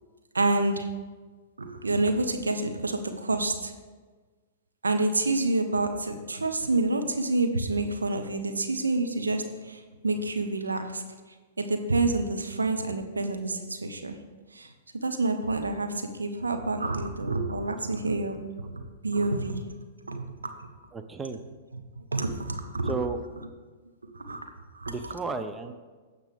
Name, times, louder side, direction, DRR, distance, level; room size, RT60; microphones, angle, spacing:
voice 1, 0.3-0.9 1.6-3.7 4.8-11.0 11.6-14.2 14.5-14.7 15.0-18.4 18.7-19.7 20.1-20.7 22.1-23.1 24.0-24.5 24.7-24.9, right 2 dB, 85° right, 6 dB, 0.9 m, -28 dB
voice 2, 20.9-21.4 22.8-23.2 24.9-25.7, right 4 dB, 15° right, 8 dB, 0.7 m, -33 dB
16.0 x 5.6 x 3.6 m, 1.4 s
figure-of-eight pair, 110°, 0 cm